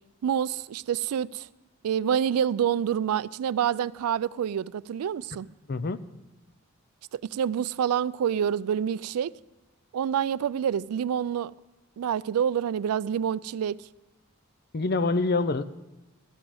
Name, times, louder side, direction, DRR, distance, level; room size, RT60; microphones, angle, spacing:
voice 1, 0.2-1.5 1.8-5.5 7.1-9.3 9.9-11.5 12.0-13.8, right 8 dB, 90° right, 0.3 m, -27 dB
voice 2, 5.7-6.0 14.7-15.6, left 3 dB, 45° left, 0.5 m, -25 dB
14.0 x 6.2 x 7.8 m
head